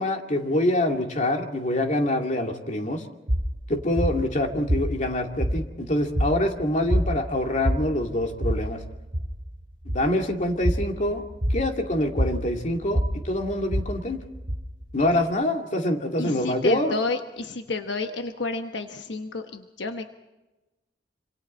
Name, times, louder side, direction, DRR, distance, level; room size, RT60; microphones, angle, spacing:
voice 1, 0.0-3.0 3.7-8.8 9.9-11.2 11.5-14.2 14.9-17.0, left 1 dB, 45° left, 3 dB, 2.4 m, -25 dB
sound 1, 3.3-15.3, equal, 50° right, 4.0 m, -28 dB
voice 2, 16.2-20.1, left 3 dB, 80° left, 6 dB, 1.1 m, -30 dB
26.5 x 26.5 x 4.3 m, 1.1 s
head